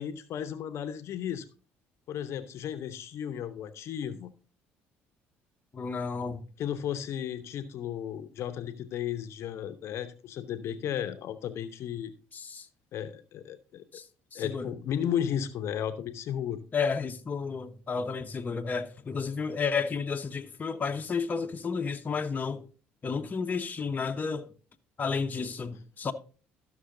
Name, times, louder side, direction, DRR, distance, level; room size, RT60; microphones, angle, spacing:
voice 1, 0.0-1.4 2.1-4.3 6.6-12.1 12.9-13.8 14.3-16.6, left 9 dB, 60° left, 0.8 m, -34 dB
voice 2, 5.7-6.4 12.3-12.7 13.9-14.0 14.3-14.7 16.7-22.6 23.0-24.5 25.0-26.1, left 5 dB, 35° left, 0.9 m, -32 dB
13.0 x 6.2 x 3.8 m
supercardioid pair, 70°, 5 cm